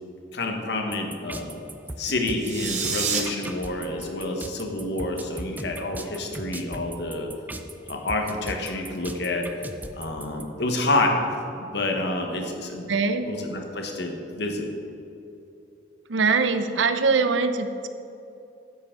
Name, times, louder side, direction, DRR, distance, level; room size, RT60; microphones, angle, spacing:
voice 1, 0.3-1.5 2.0-7.3 7.9-9.5 9.9-12.9 13.2-14.7, left 2 dB, 60° left, 3 dB, 1.1 m, -28 dB
sound 1, 0.9-10.4, right 2 dB, 10° right, 0.3 m, -37 dB
sound 2, 2.3-3.2, right 6 dB, 40° right, 0.9 m, -27 dB
voice 2, 12.9-13.3 16.1-17.9, right 4 dB, 80° right, 9 dB, 0.6 m, -22 dB
9.7 x 7.5 x 3.7 m, 2.8 s
head